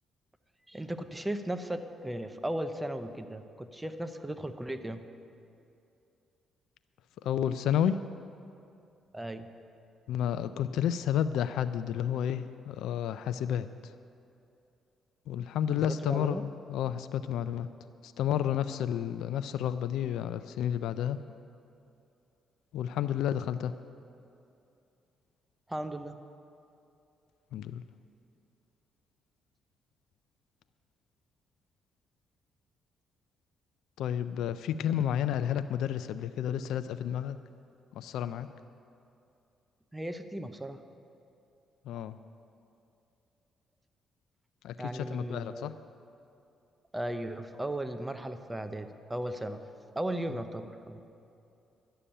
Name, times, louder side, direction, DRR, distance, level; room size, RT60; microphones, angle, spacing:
voice 1, 0.7-5.0 9.1-9.5 15.8-16.4 25.7-26.2 39.9-40.8 44.8-45.7 46.9-49.6 50.0-51.0, right 1 dB, 10° right, 9 dB, 0.7 m, -36 dB
voice 2, 7.2-8.0 10.1-13.9 15.3-17.7 18.0-21.2 22.7-23.7 27.5-27.8 34.0-37.4 37.9-38.5 41.8-42.2 44.6-45.7, left 10 dB, 85° left, 12 dB, 0.3 m, -31 dB
11.5 x 6.9 x 8.8 m, 2.7 s
cardioid pair, 90°, 0 cm